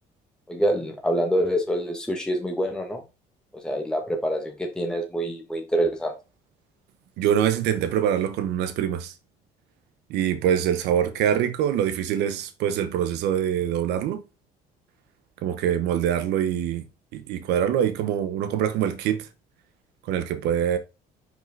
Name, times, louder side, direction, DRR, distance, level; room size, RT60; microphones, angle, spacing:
voice 1, 0.5-3.0 3.6-6.1, equal, 5° left, 1.5 m, -26 dB
voice 2, 7.2-9.1 10.1-14.2 15.4-16.9 17.1-19.3 20.0-20.8, right 9 dB, 85° right, 0.9 m, -24 dB
5.4 x 4.8 x 3.8 m
cardioid pair, 110°, 17 cm